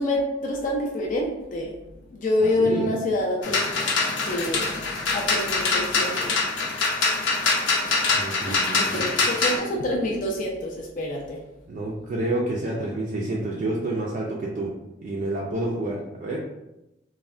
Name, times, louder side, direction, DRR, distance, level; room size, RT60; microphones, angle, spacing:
voice 1, 0.0-1.7 2.1-3.8 4.3-4.7 5.1-6.4 8.4-11.4, left 1 dB, 45° left, -1 dB, 0.4 m, -27 dB
voice 2, 2.4-2.9 8.1-9.4 11.7-14.7 15.0-16.4, right 2 dB, 45° right, -3 dB, 0.3 m, -29 dB
sound 1, 3.4-9.6, left 3 dB, 85° left, 0.6 m, -24 dB
3.2 x 2.1 x 2.4 m, 0.92 s
head